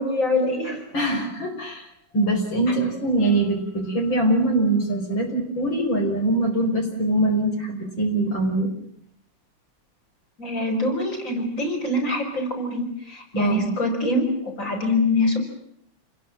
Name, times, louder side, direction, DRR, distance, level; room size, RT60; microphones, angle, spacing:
voice 1, 0.0-0.8 2.7-2.8 10.4-15.4, left 1 dB, 40° left, 3 dB, 6.0 m, -24 dB
voice 2, 0.9-8.7 13.3-13.7, right 2 dB, 85° left, 3 dB, 6.1 m, -23 dB
28.5 x 21.5 x 7.6 m, 0.69 s
omnidirectional pair, 2.0 m